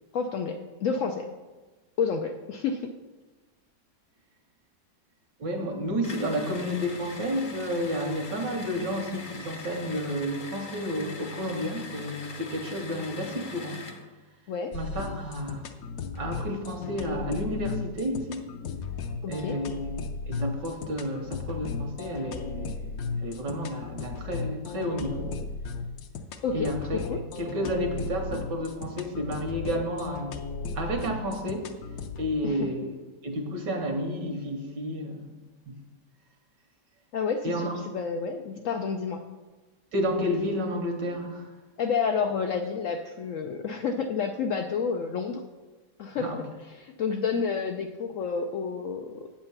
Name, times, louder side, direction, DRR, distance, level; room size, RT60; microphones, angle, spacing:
voice 1, 0.1-1.3 2.0-2.9 14.5-14.7 19.2-19.6 26.4-27.2 32.4-32.7 37.1-39.2 41.8-45.4 46.0-49.3, left 5 dB, 90° left, 5 dB, 0.6 m, -30 dB
voice 2, 5.4-13.8 14.7-15.6 16.2-18.4 19.3-19.8 20.3-22.9 23.2-25.4 26.5-27.0 27.4-30.4 30.7-31.7 32.2-33.0 33.2-35.4 35.7-35.8 37.4-37.8 39.9-41.5 46.2-46.4, equal, 75° right, 4 dB, 1.8 m, -31 dB
sound 1, 6.0-14.1, left 3 dB, 50° left, 0.6 m, -42 dB
sound 2, 14.7-32.3, left 4 dB, 65° left, 0.9 m, -36 dB
8.7 x 4.4 x 7.0 m, 1.2 s
omnidirectional pair, 1.9 m